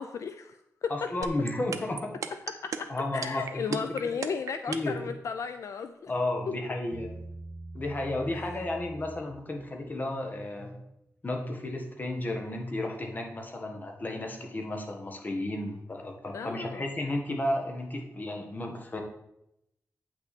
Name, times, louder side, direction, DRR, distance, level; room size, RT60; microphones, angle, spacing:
voice 1, 0.0-1.1 2.6-6.1 6.5-6.6 8.3-8.4 16.3-16.9, left 6 dB, 70° left, 9 dB, 0.4 m, -35 dB
voice 2, 0.9-2.1 2.9-4.2 4.7-5.0 6.1-7.2 7.7-10.7 11.2-19.0, left 1 dB, 30° left, 3 dB, 1.4 m, -33 dB
sound 1, 1.2-5.0, right 7 dB, 80° right, 0.6 m, -33 dB
Bass guitar, 6.9-10.3, right 2 dB, ahead, 1.0 m, -45 dB
8.6 x 6.0 x 4.2 m, 0.82 s
wide cardioid pair, 110°, 5 cm